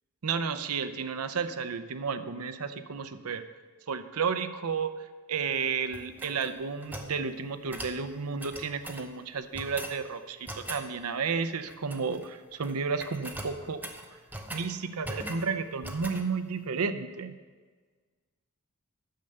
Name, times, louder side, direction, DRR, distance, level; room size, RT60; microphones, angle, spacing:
voice 1, 0.2-3.4 3.9-4.9 5.3-13.8 14.3-17.3, right 5 dB, 90° right, 11 dB, 0.6 m, -32 dB
sound 1, 5.9-7.1 7.7-8.0 8.4-9.1 9.5-10.0 10.5-10.9 11.7-12.3 12.5-12.7 13.0-14.7 15.0-15.5 15.8-16.3, right 1 dB, 10° right, 0.8 m, -40 dB
10.5 x 6.8 x 6.5 m, 1.5 s
head